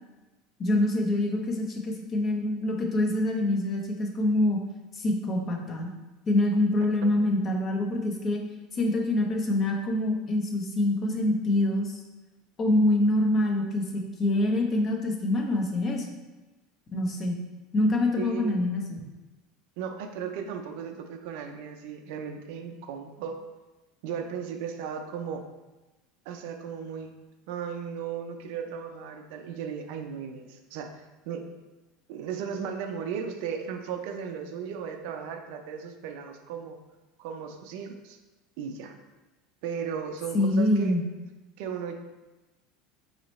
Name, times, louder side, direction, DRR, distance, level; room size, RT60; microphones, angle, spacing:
voice 1, 0.6-4.6 4.9-5.9 6.3-8.4 8.7-12.0 12.6-16.1 16.9-17.4 17.7-19.0 40.3-41.0, left 1 dB, 35° left, 1 dB, 0.6 m, -25 dB
voice 2, 18.2-18.6 19.8-23.4 24.0-25.4 26.3-27.1 27.5-31.4 32.1-36.8 37.2-38.2 38.6-39.0 39.6-41.0 41.6-42.1, right 7 dB, 70° right, 5 dB, 0.4 m, -36 dB
3.1 x 2.8 x 4.1 m, 1.1 s
supercardioid pair, 115°, 0 cm